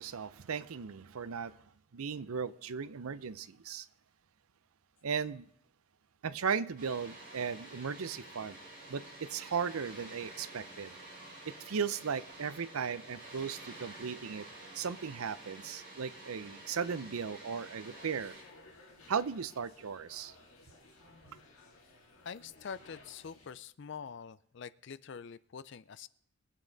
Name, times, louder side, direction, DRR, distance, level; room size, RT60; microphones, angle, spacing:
voice 1, 0.0-1.6 1.9-3.9 5.0-5.5 6.2-8.6 8.9-11.0 11.4-14.5 14.7-18.4 19.1-20.3, right 6 dB, 80° right, 0.6 m, -36 dB
Water, 6.8-18.4, right 2 dB, 40° right, 5.7 m, -50 dB
sound 1, 17.8-23.5, left 2 dB, 85° left, 2.8 m, -58 dB
voice 2, 22.2-26.1, left 6 dB, 55° left, 0.4 m, -45 dB
22.5 x 8.4 x 3.9 m
head